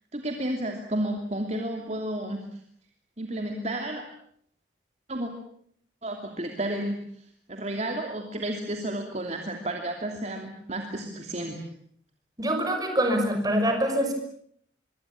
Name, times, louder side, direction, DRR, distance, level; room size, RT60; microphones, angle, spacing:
voice 1, 0.1-2.6 3.2-4.0 5.1-5.3 6.0-11.6, right 1 dB, 35° right, 4 dB, 2.9 m, -32 dB
voice 2, 12.4-14.1, equal, 20° right, 5 dB, 6.0 m, -24 dB
25.0 x 24.0 x 8.6 m, 0.65 s
head